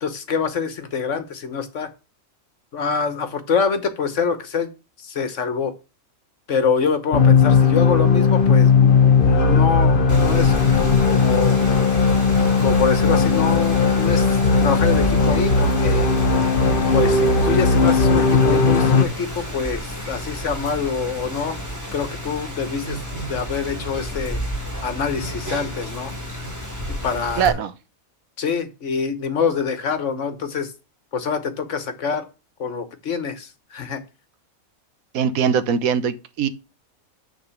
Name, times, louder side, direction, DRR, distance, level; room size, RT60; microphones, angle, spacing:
voice 1, 0.0-1.9 2.7-4.7 5.0-5.7 6.5-8.9 9.2-10.5 11.1-11.6 12.6-16.1 16.9-21.6 21.9-23.0 23.3-24.4 24.8-26.1 27.0-27.6 28.4-30.7 31.1-32.3 32.6-34.0, left 5 dB, 60° left, 1.4 m, -25 dB
sound 1, 7.1-19.0, left 4 dB, 45° left, 1.0 m, -17 dB
Rain, 10.1-27.5, equal, 10° right, 2.6 m, -31 dB
voice 2, 27.4-27.7 35.1-36.5, right 7 dB, 80° right, 1.2 m, -21 dB
9.8 x 3.9 x 7.0 m
omnidirectional pair, 1.5 m